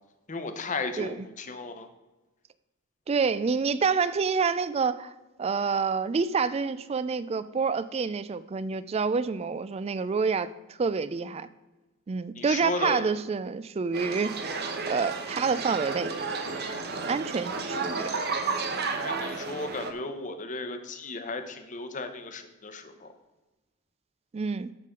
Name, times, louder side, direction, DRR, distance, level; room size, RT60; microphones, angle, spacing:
voice 1, 0.3-1.9 12.4-13.1 19.0-23.1, left 3 dB, 35° left, 8 dB, 0.9 m, -35 dB
voice 2, 3.1-5.1 5.4-11.5 12.1-14.3 14.9-16.1 17.0-18.1 24.3-24.7, right 5 dB, 30° right, 15 dB, 0.3 m, -28 dB
sound 1, 13.9-19.9, right 4 dB, 50° right, 1.0 m, -32 dB
14.0 x 5.8 x 3.8 m, 1.1 s
head